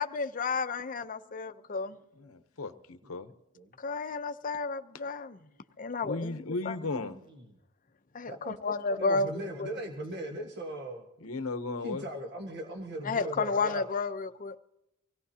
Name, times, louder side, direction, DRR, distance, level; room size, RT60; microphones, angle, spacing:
voice 1, 0.0-2.0 3.8-5.4 5.8-6.4 6.6-7.1 8.1-9.7 13.0-14.6, left 4 dB, 40° left, 0.7 m, -32 dB
voice 2, 2.2-3.3 6.0-7.2 11.2-12.0, left 3 dB, 75° left, 0.9 m, -36 dB
voice 3, 6.5-7.4 8.3-11.0 11.8-13.9, right 1 dB, 55° right, 1.5 m, -39 dB
24.5 x 17.0 x 2.8 m
head